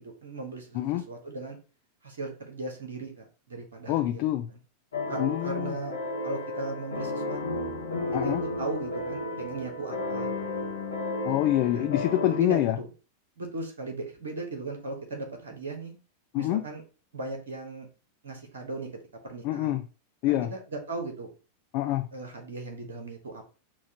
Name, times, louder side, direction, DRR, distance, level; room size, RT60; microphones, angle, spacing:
voice 1, 0.0-1.6 2.0-4.2 4.5-4.6 5.1-6.0 6.2-7.6 8.2-10.7 11.7-11.9 12.3-12.9 13.4-15.9 16.3-16.8 17.1-17.9 18.2-19.8 20.3-21.3 22.1-23.4, right 2 dB, 65° right, 3 dB, 1.1 m, -38 dB
voice 2, 3.9-4.5 5.2-5.7 8.1-8.4 11.2-12.8 16.3-16.7 19.4-19.8 20.2-20.5 21.7-22.1, left 14 dB, 45° left, 8 dB, 0.3 m, -26 dB
sound 1, 4.9-12.4, left 2 dB, 70° left, 0.8 m, -33 dB
6.0 x 2.4 x 2.8 m, 0.34 s
figure-of-eight pair, 90°, 0 cm